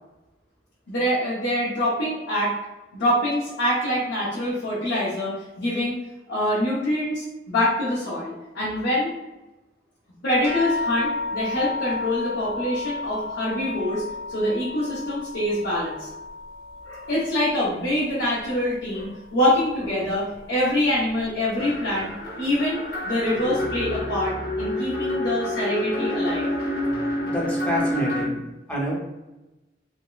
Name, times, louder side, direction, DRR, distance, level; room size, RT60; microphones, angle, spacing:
voice 1, 0.9-2.6 2.9-6.0 6.3-9.1 10.2-14.0 14.3-16.1 16.8-22.1 22.4-22.8 23.0-26.5, left 1 dB, 85° left, -8 dB, 0.8 m, -25 dB
sound 1, 10.4-19.3 19.6-20.5 21.2-21.3 21.7-21.9, left 2 dB, 35° right, 0.8 m, -33 dB
sound 2, 21.6-28.3, left 1 dB, 60° left, 0.9 m, -28 dB
voice 2, 27.2-28.4 28.7-28.9, equal, 5° left, -4 dB, 0.6 m, -27 dB
3.4 x 2.0 x 2.3 m, 1.0 s
head